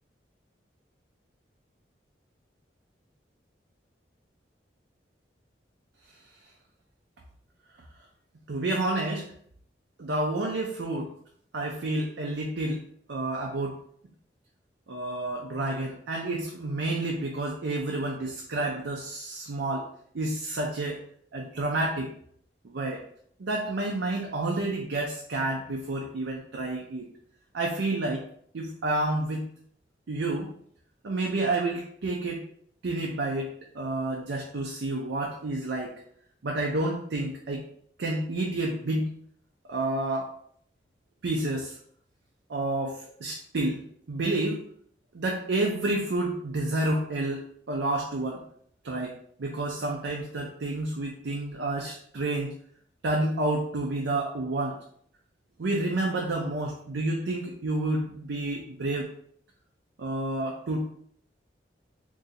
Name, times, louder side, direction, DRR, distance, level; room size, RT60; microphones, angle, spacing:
voice 1, 8.5-9.3 10.0-11.1 11.5-12.8 13.1-13.8 14.9-19.9 20.1-21.0 21.3-22.1 22.6-23.0 23.4-27.1 27.5-28.3 28.5-29.4 30.1-30.5 31.0-32.4 32.8-35.9 36.4-37.6 38.0-39.1 39.7-40.3 41.2-41.8 42.5-43.8 44.1-44.6 45.1-48.4 48.8-52.5 53.0-54.8 55.6-59.1 60.0-60.9, right 2 dB, 80° right, 0 dB, 0.5 m, -29 dB
2.7 x 2.6 x 4.1 m, 0.63 s
head